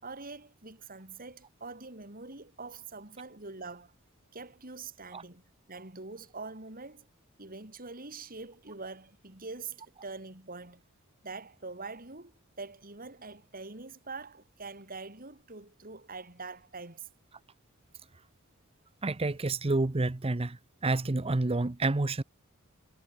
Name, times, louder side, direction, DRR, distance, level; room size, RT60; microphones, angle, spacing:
voice 1, 0.0-3.9 4.3-5.4 5.7-7.1 7.4-10.8 11.2-17.1, right 3 dB, 40° right, 5.4 m, -44 dB
voice 2, 19.0-22.2, right 2 dB, 25° right, 0.7 m, -29 dB
head